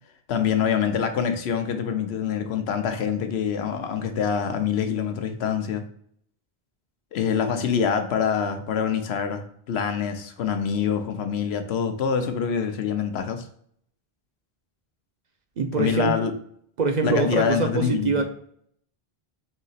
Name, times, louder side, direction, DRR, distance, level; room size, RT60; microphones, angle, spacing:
voice 1, 0.3-5.9 7.1-13.5 15.7-16.3 17.0-18.2, left 7 dB, 85° left, 7 dB, 0.9 m, -25 dB
voice 2, 15.6-16.2 16.8-18.2, right 4 dB, 55° right, 5 dB, 0.5 m, -24 dB
3.8 x 2.9 x 4.0 m, 0.66 s
omnidirectional pair, 1.0 m